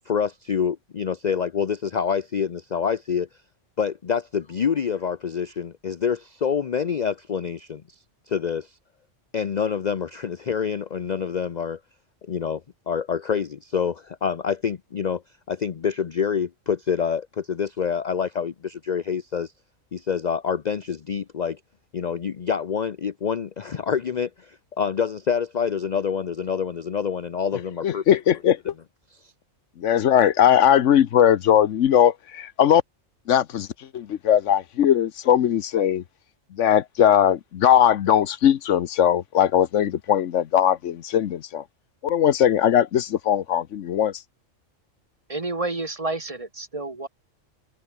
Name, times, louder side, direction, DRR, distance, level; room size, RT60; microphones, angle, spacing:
voice 1, 0.1-3.3 3.8-7.8 8.3-8.7 9.3-11.8 12.3-12.6 12.9-15.2 15.5-19.5 19.9-21.6 21.9-28.0, left 7 dB, 45° left, 0.7 m, -26 dB
voice 2, 27.8-28.7 29.8-32.8 33.3-33.7 33.9-36.0 36.5-41.6 42.0-44.1, left 10 dB, 75° left, 1.1 m, -19 dB
voice 3, 45.3-47.1, right 2 dB, 30° right, 1.3 m, -29 dB
omnidirectional pair, 1.3 m